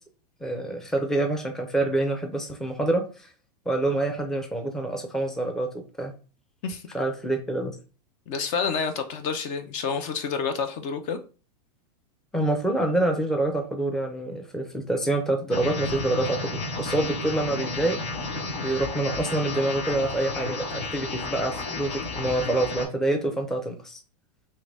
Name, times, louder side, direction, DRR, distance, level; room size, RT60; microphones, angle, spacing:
voice 1, 0.4-3.0 3.7-5.7 6.0-6.1 6.9-7.7 12.3-18.0 18.6-20.6 20.9-24.0, right 2 dB, ahead, 3 dB, 0.6 m, -26 dB
voice 2, 8.3-11.2, left 5 dB, 45° left, 7 dB, 0.6 m, -29 dB
sound 1, 15.5-22.8, left 3 dB, 85° left, 1.6 m, -32 dB
3.8 x 3.1 x 3.3 m, 0.35 s
supercardioid pair, 135°, 21 cm